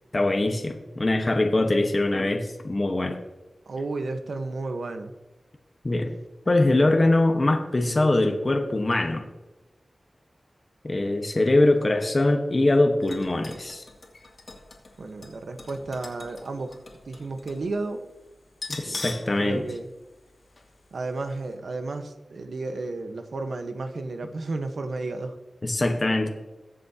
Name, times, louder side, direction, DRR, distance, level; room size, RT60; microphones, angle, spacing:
voice 1, 0.1-3.2 5.8-6.1 6.5-9.3 10.8-13.8 18.8-19.7 25.6-26.3, left 2 dB, 35° left, 4 dB, 1.2 m, -22 dB
voice 2, 3.7-5.1 15.0-16.8 17.0-18.0 18.9-19.1 19.4-19.9 20.9-25.4, right 3 dB, 80° right, 7 dB, 1.1 m, -32 dB
sound 1, 13.0-17.7 17.9-18.0 18.5-19.4 19.7-19.8 20.6-20.7 21.1-21.2, left 3 dB, 65° left, 2.4 m, -41 dB
22.0 x 7.5 x 2.9 m, 1.1 s
wide cardioid pair, 75°, 0 cm